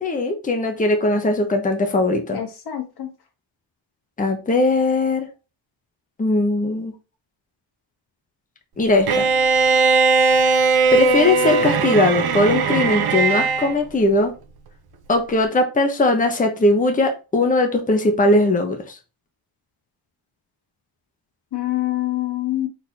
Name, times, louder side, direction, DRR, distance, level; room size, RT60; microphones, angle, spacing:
voice 1, 0.0-2.4 4.2-5.3 6.2-6.9 8.8-9.3 10.9-14.3 15.1-18.9, left 2 dB, 15° left, 4 dB, 1.0 m, -19 dB
voice 2, 2.3-3.1 21.5-22.7, left 14 dB, 50° left, 3 dB, 1.6 m, -25 dB
Bowed string instrument, 9.1-13.7, right 4 dB, 50° right, 0.9 m, -18 dB
4.2 x 4.2 x 2.8 m, 0.30 s
cardioid pair, 95°, 48 cm